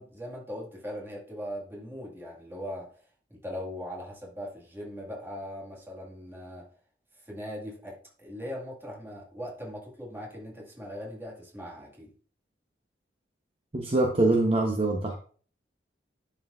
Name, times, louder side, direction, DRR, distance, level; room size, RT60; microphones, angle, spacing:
voice 1, 0.0-3.0 3.3-6.7 7.2-12.1, equal, 15° right, -2 dB, 1.9 m, -40 dB
voice 2, 13.7-15.2, right 2 dB, 35° right, 0 dB, 0.9 m, -24 dB
11.0 x 4.4 x 2.5 m, 0.42 s
head